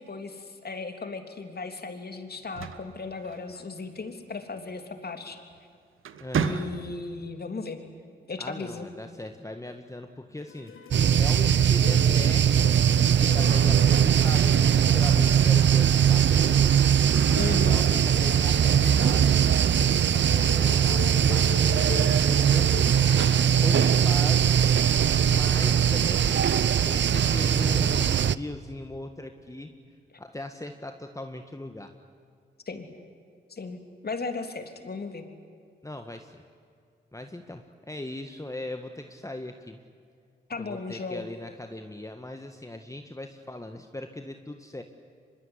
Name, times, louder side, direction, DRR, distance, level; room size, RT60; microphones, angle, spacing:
voice 1, 0.0-5.4 6.3-7.8 8.3-8.9 17.3-17.8 32.7-32.9 33.5-33.8 34.0-35.2 40.5-41.2, left 4 dB, 50° left, 6 dB, 3.2 m, -36 dB
sound 1, 2.3-3.9 5.3-5.6 6.0-7.2, right 7 dB, 75° right, 1.2 m, -32 dB
voice 2, 6.2-6.7 8.4-10.7 11.2-12.7 13.2-16.8 17.7-22.9 23.6-24.6 25.3-29.7 30.2-31.9 35.8-36.4 37.1-39.8 40.6-44.8, left 1 dB, 15° left, 6 dB, 1.7 m, -39 dB
sound 2, 10.4-24.0, left 6 dB, 80° left, 3.0 m, -42 dB
sound 3, 10.9-28.4, right 8 dB, 60° right, 0.7 m, -21 dB
24.5 x 22.5 x 9.9 m, 2.2 s
supercardioid pair, 45°, 21 cm